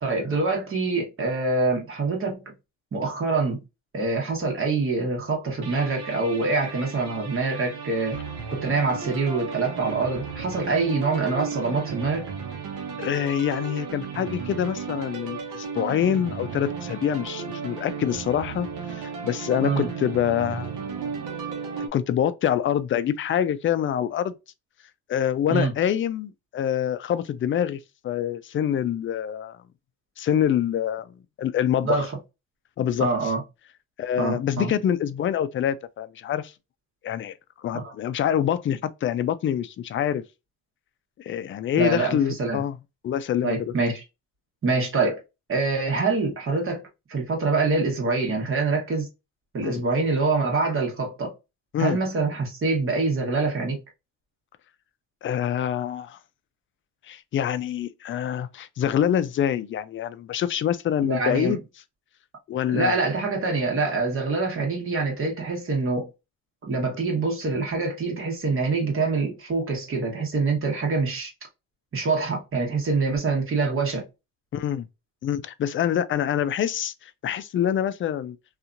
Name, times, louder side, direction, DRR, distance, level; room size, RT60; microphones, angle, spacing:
voice 1, 0.0-2.4 2.9-3.6 3.9-8.2 8.5-12.3 19.6-19.9 25.5-25.7 31.8-32.1 33.0-33.4 34.2-34.7 37.7-37.9 41.8-42.6 43.4-44.0 44.6-45.2 45.5-49.1 49.5-51.3 51.8-53.8 61.0-61.6 62.7-66.1 66.6-71.3 71.9-74.0, right 3 dB, 45° right, 1.2 m, -25 dB
sound 1, 5.6-21.9, right 6 dB, 90° right, 0.8 m, -35 dB
voice 2, 13.0-20.7 21.8-24.3 25.1-29.6 30.2-32.0 32.8-33.3 34.0-36.5 37.0-40.2 41.2-42.8 43.0-43.7 49.6-49.8 51.7-52.0 55.2-56.2 57.1-61.6 62.5-63.0 74.5-74.9 75.2-78.4, left 9 dB, 45° left, 0.4 m, -26 dB
2.7 x 2.4 x 2.5 m
cardioid pair, 90°, 30 cm